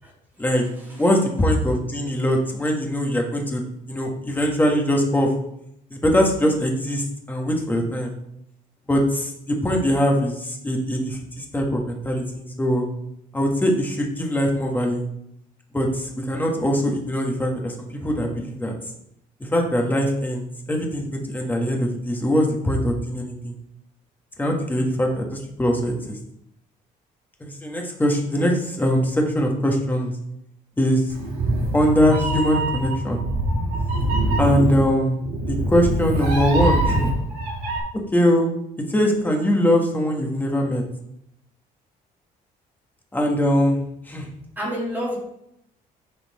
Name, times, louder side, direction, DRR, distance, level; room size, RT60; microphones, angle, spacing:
voice 1, 1.0-3.6 3.9-5.3 5.9-8.1 8.9-12.9 13.3-15.0 15.7-18.7 19.4-23.5 24.4-26.2 27.4-30.1 30.8-31.1 31.7-33.2 34.4-35.2 35.5-37.1 38.1-38.5 38.9-40.8 43.1-43.8 44.1-44.3, equal, 10° left, 1 dB, 1.4 m, -22 dB
Meow, 31.1-37.8, right 1 dB, 70° right, 2.4 m, -24 dB
voice 2, 44.6-45.2, equal, 10° right, -4 dB, 2.2 m, -29 dB
10.5 x 4.3 x 4.2 m, 0.77 s
cardioid pair, 135°, 16 cm